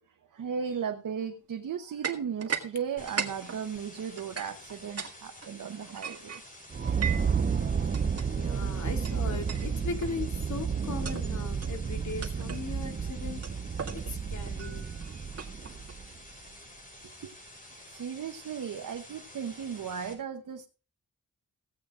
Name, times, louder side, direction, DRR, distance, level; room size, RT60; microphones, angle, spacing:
voice 1, 0.3-6.4 6.9-7.0 7.9-8.0 17.2-17.3 17.9-20.7, right 7 dB, 75° right, 1.0 m, -36 dB
Glasses Clinging, 2.0-2.7 3.0-5.1 5.4-7.4 7.9-8.3 9.0-9.2 9.5-9.7 10.0-10.3 10.9-11.3 11.6-11.8 12.2-12.7 13.4-15.9, right 7 dB, 50° right, 1.8 m, -38 dB
sound 1, 3.0-20.1, left 1 dB, 25° left, 5.8 m, -50 dB
sound 2, 6.7-16.3, right 6 dB, 30° right, 0.6 m, -31 dB
voice 2, 8.3-13.5 13.9-14.9, left 4 dB, 60° left, 2.4 m, -38 dB
16.0 x 8.8 x 3.7 m
wide cardioid pair, 105°, 32 cm